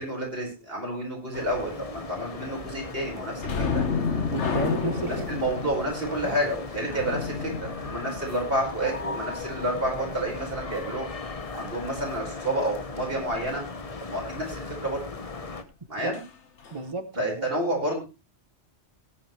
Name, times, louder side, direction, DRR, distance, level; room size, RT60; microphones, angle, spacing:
voice 1, 0.0-3.8 5.1-11.1 11.5-13.6 14.0-15.0 15.9-16.2 17.2-18.0, right 1 dB, 55° right, 0 dB, 5.3 m, -30 dB
sound 1, 1.3-15.6, left 3 dB, 35° left, 1.1 m, -37 dB
sound 2, 3.4-8.8 16.1-16.3 16.6-16.8, left 5 dB, 90° left, 1.7 m, -30 dB
voice 2, 4.3-5.3 6.2-6.4 16.0-16.2 16.7-17.5, right 4 dB, 35° right, 11 dB, 0.7 m, -32 dB
18.0 x 9.9 x 3.2 m, 0.28 s
omnidirectional pair, 1.1 m